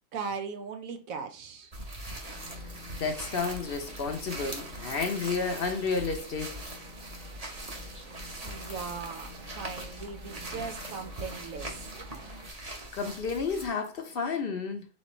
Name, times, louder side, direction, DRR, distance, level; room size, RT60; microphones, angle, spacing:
voice 1, 0.1-1.7 8.4-11.8, right 5 dB, 90° right, 1.2 m, -38 dB
sound 1, 1.7-13.7, right 1 dB, 30° right, 0.9 m, -41 dB
sound 2, 2.2-12.5, left 1 dB, 60° right, 1.6 m, -49 dB
voice 2, 3.0-6.6 12.5-12.6 12.9-14.9, left 4 dB, 55° left, 0.7 m, -31 dB
4.2 x 3.9 x 3.0 m
omnidirectional pair, 1.4 m